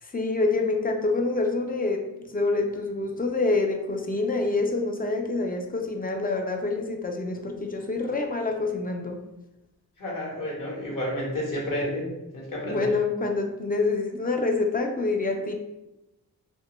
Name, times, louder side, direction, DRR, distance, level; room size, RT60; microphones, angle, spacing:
voice 1, 0.0-2.1 2.3-9.2 12.6-15.5, left 3 dB, 25° left, 3 dB, 0.3 m, -26 dB
voice 2, 10.0-12.1 12.3-12.9, left 1 dB, 55° left, -3 dB, 1.0 m, -30 dB
2.1 x 2.1 x 3.0 m, 0.95 s
cardioid pair, 55°, 39 cm